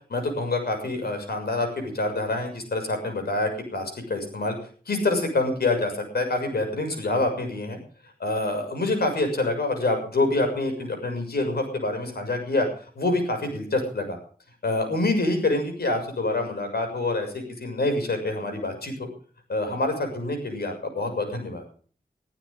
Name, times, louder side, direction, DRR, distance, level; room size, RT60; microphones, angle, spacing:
voice 1, 0.1-4.5 4.9-7.8 8.2-12.7 12.9-14.2 14.6-19.1 19.5-21.6, left 2 dB, 90° left, 5 dB, 6.7 m, -26 dB
22.5 x 14.5 x 3.7 m, 0.44 s
wide cardioid pair, 80°, 16 cm